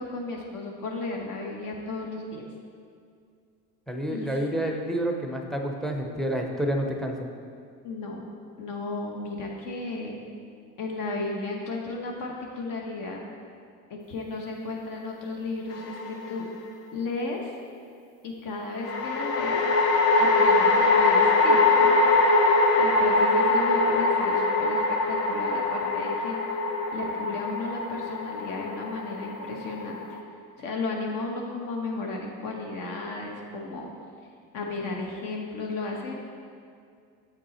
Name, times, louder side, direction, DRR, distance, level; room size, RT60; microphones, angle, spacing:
voice 1, 0.0-2.5 4.1-4.4 7.8-8.3 8.6-10.2 10.8-13.2 13.9-16.4 16.9-17.5 18.2-19.6 20.2-22.0 22.8-26.4 26.9-30.2 30.6-33.9 34.5-36.2, left 3 dB, 65° left, 0 dB, 1.0 m, -34 dB
voice 2, 3.9-7.3, right 1 dB, ahead, 2 dB, 0.5 m, -29 dB
sound 1, 15.7-16.4 18.8-30.2, left 3 dB, 85° left, 0.8 m, -23 dB
7.6 x 5.3 x 4.2 m, 2.3 s
cardioid pair, 135°, 36 cm